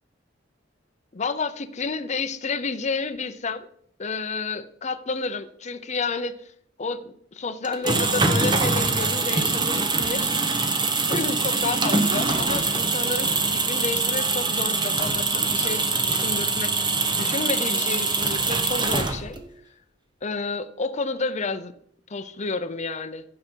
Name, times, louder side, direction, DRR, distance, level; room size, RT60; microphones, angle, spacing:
voice 1, 1.1-3.7 4.0-6.4 6.8-10.3 11.1-16.8 17.2-19.4 20.2-21.7 22.1-23.2, left 4 dB, 40° left, 8 dB, 0.7 m, -30 dB
sound 1, 7.6-19.5, right 3 dB, 25° right, 1.0 m, -24 dB
15.0 x 5.9 x 4.5 m, 0.66 s
head